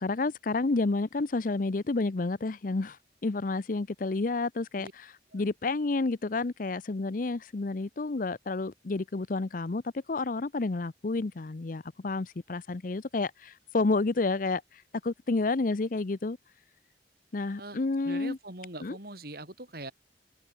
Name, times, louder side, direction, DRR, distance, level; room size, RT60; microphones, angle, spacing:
voice 1, 0.0-5.1 5.3-14.6 15.0-16.4 17.3-18.4 18.8-19.0, left 3 dB, 50° left, 0.6 m, -30 dB
voice 2, 18.0-19.9, right 2 dB, 60° right, 7.2 m, -42 dB
head